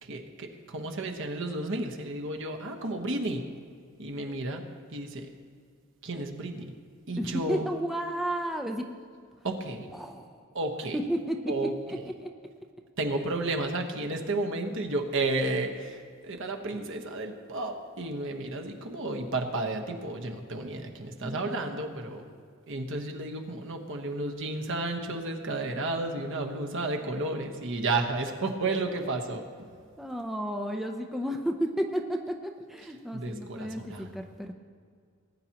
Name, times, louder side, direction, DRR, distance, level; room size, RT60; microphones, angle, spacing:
voice 1, 0.0-3.4 4.0-4.6 4.9-5.3 6.0-6.8 7.1-7.6 9.4-9.9 10.5-11.0 11.5-11.7 13.0-22.2 22.7-29.4 33.1-34.1, right 2 dB, 60° right, 3 dB, 1.2 m, -32 dB
voice 2, 7.2-8.8 9.9-10.3 10.9-11.4 11.9-12.0 12.2-12.3 13.2-13.3 21.2-21.8 30.0-32.2 32.4-34.5, equal, ahead, 2 dB, 0.6 m, -32 dB
19.5 x 9.7 x 3.0 m, 2.1 s
head